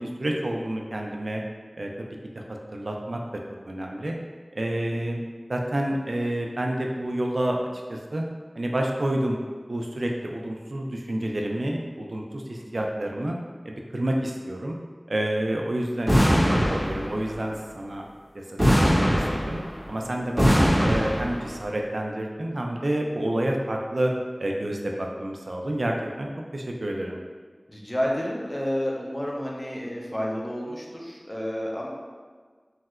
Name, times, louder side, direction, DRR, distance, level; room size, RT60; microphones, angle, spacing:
voice 1, 0.0-1.4 1.8-2.1 2.3-2.4 2.7-3.2 3.7-4.1 4.5-5.2 5.5-7.6 7.9-8.2 8.6-9.4 9.7-13.4 13.6-14.8 15.1-18.0 18.3-19.6 19.9-24.1 24.4-27.2, right 1 dB, 80° right, 0 dB, 0.3 m, -29 dB
sound 1, 16.1-17.3 18.6-19.9 20.4-21.5, equal, 5° right, 1.3 m, -21 dB
voice 2, 27.7-31.9, equal, 25° left, -3 dB, 0.6 m, -30 dB
3.1 x 2.7 x 2.4 m, 1.5 s
wide cardioid pair, 45°, 0 cm